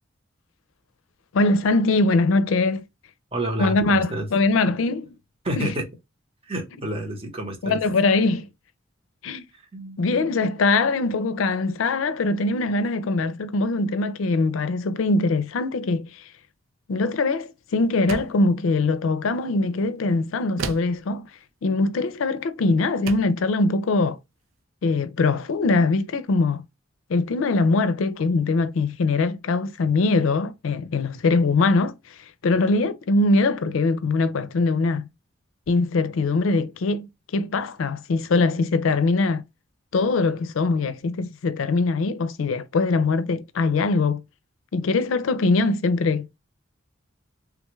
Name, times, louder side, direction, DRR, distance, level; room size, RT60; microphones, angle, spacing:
voice 1, 1.3-2.8 3.6-5.2 5.6-5.7 7.6-8.5 9.2-9.4 10.0-16.2 16.9-21.3 21.6-24.2 24.8-26.6 27.1-32.1 32.4-35.1 35.7-39.4 39.9-44.2 44.7-46.3, left 3 dB, 85° left, 0.4 m, -22 dB
voice 2, 3.3-4.3 5.4-5.9 6.4-7.8 9.5-10.4, right 1 dB, 30° right, 0.9 m, -30 dB
sound 1, 18.1-18.5 20.6-21.0 22.4-22.5 23.1-23.4, right 5 dB, 85° right, 0.5 m, -32 dB
3.4 x 2.3 x 3.0 m
head